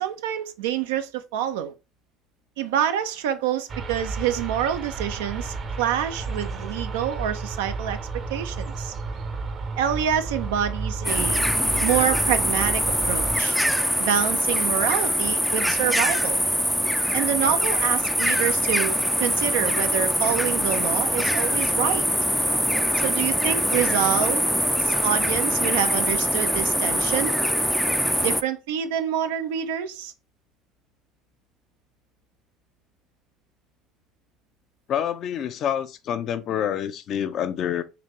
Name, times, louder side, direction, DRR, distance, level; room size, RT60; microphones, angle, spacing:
voice 1, 0.0-1.7 2.6-8.0 8.3-8.9 9.8-11.4 11.8-13.6 14.0-16.4 17.1-22.1 23.0-24.5 24.8-27.3 28.2-30.1, right 10 dB, 85° right, 0.5 m, -27 dB
sound 1, 3.7-13.4, right 4 dB, 45° right, 0.7 m, -32 dB
sound 2, 11.0-28.4, equal, ahead, 0.4 m, -23 dB
voice 2, 34.9-37.8, left 9 dB, 55° left, 0.6 m, -27 dB
3.9 x 2.8 x 3.0 m
supercardioid pair, 80°, 0 cm